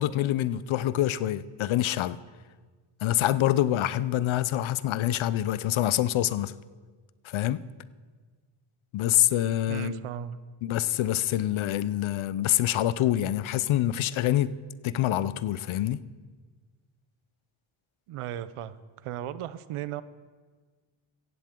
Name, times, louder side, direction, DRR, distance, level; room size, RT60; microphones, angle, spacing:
voice 1, 0.0-2.2 3.0-6.5 7.2-7.6 8.9-10.0 10.6-14.5 14.8-16.0, left 13 dB, 70° left, 0.6 m, -26 dB
voice 2, 9.7-10.4 18.1-18.8 19.0-20.0, right 11 dB, 85° right, 0.7 m, -36 dB
16.0 x 15.0 x 3.7 m
cardioid pair, 125°, 50 cm